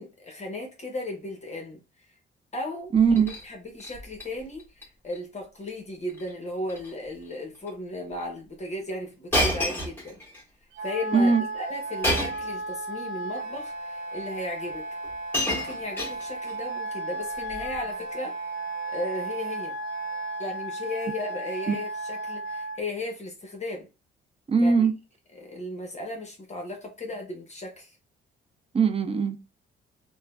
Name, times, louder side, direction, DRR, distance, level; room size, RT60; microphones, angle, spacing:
voice 1, 0.0-2.1 2.5-2.9 3.4-10.2 10.8-14.9 15.4-18.5 18.9-19.8 20.4-23.9 24.6-24.9 25.4-28.0, left 1 dB, 35° left, 1.0 m, -36 dB
voice 2, 2.9-3.3 11.1-11.4 21.7-21.8 24.5-24.9 28.7-29.4, right 5 dB, 30° right, 0.5 m, -20 dB
Shatter, 3.0-3.4 3.8-4.3 4.6-4.8 5.1-5.2 6.1-6.3 6.6-6.9 7.7-7.8 9.3-10.4 12.0-12.5 13.5-13.6 14.7-14.8 15.0-16.6 17.5-17.8, left 1 dB, 10° left, 1.7 m, -29 dB
Wind instrument woodwind instrument, 10.7-22.8, right 2 dB, 85° right, 1.1 m, -34 dB
3.5 x 2.1 x 2.3 m
cardioid pair, 90°, 20 cm